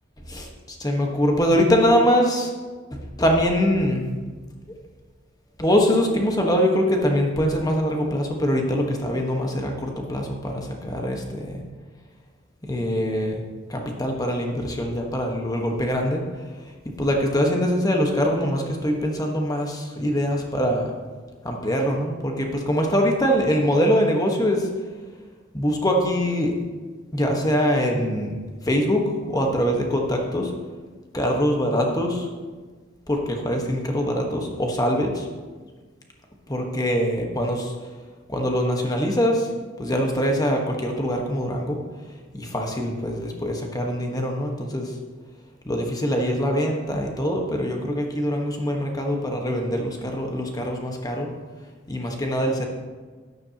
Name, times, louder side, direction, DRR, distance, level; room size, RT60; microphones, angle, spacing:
voice 1, 0.3-2.5 2.9-4.2 5.6-11.6 12.6-13.4 13.7-16.2 17.0-20.9 21.4-24.7 25.5-26.5 27.1-28.4 28.6-30.5 31.1-32.3 33.1-35.3 36.5-37.7 38.3-39.5 39.8-41.8 42.3-44.9 45.6-51.3 51.9-52.7, equal, 20° left, 2 dB, 1.4 m, -23 dB
13.0 x 10.0 x 3.0 m, 1.4 s
head